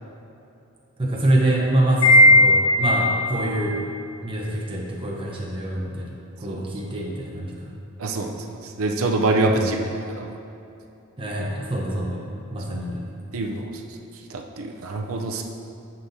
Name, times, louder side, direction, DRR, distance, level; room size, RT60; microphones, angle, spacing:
voice 1, 1.0-3.8 4.2-7.7 9.3-9.7 11.2-12.2 12.5-13.1, right 1 dB, 25° right, -3 dB, 0.9 m, -25 dB
Wind chime, 2.0-3.4, left 1 dB, 80° left, 1.8 m, -15 dB
voice 2, 8.0-10.4 13.3-13.7 14.3-15.4, right 2 dB, 70° right, 2 dB, 0.6 m, -25 dB
9.7 x 7.2 x 2.8 m, 2.7 s
head